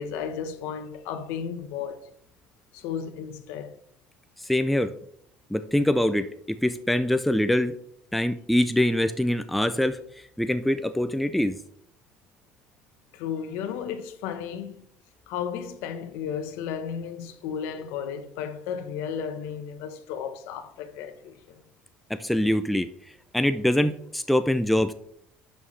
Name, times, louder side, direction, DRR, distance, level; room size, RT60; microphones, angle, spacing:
voice 1, 0.0-2.1 2.7-3.7 13.1-14.9 15.3-21.6, left 7 dB, 80° left, 1.0 m, -34 dB
voice 2, 4.5-4.9 5.5-7.8 8.1-10.0 10.4-11.6 22.1-22.9 23.3-24.9, left 1 dB, ahead, 0.3 m, -24 dB
11.5 x 5.6 x 3.2 m
cardioid pair, 170°, 4 cm